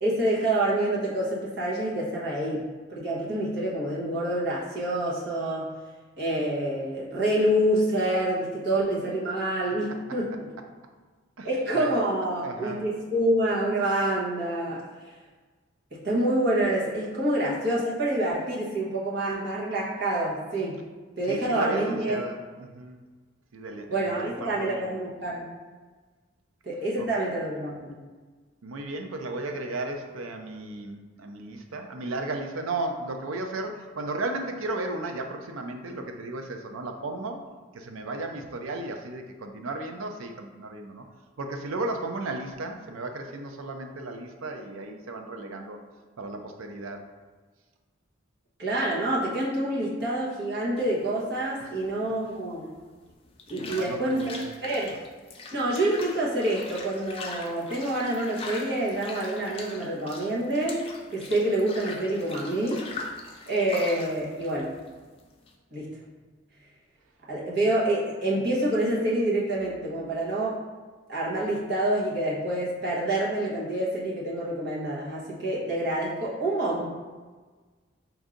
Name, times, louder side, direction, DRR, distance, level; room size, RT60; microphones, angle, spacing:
voice 1, 0.0-5.7 6.2-10.5 11.4-14.8 15.9-20.8 21.2-22.2 23.9-25.5 26.6-28.0 48.6-52.7 53.5-54.9 55.5-62.9 63.5-64.7 65.7-66.0 67.3-70.6 71.1-76.9, right 1 dB, 55° right, -6 dB, 1.1 m, -27 dB
voice 2, 12.4-12.9 21.3-23.0 23.5-25.0 27.0-27.1 28.6-37.4 37.7-41.0 41.4-45.8 46.2-47.0 51.6-51.7 52.0-52.1 53.6-54.5, right 2 dB, 90° right, 4 dB, 0.5 m, -35 dB
sound 1, 50.8-65.5, left 3 dB, 30° left, 0.4 m, -42 dB
4.6 x 2.6 x 3.8 m, 1.4 s
head